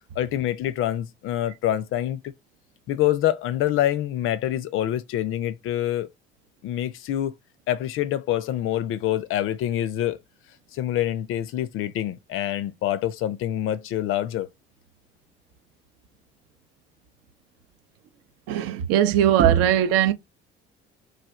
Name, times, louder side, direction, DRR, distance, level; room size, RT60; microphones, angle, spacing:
voice 1, 0.2-2.3 2.9-6.1 6.6-7.3 7.7-10.2 10.7-14.5, left 12 dB, 45° left, 0.4 m, -26 dB
voice 2, 18.5-20.1, right 10 dB, 55° right, 0.5 m, -19 dB
3.2 x 2.4 x 3.5 m
figure-of-eight pair, 50°, 30 cm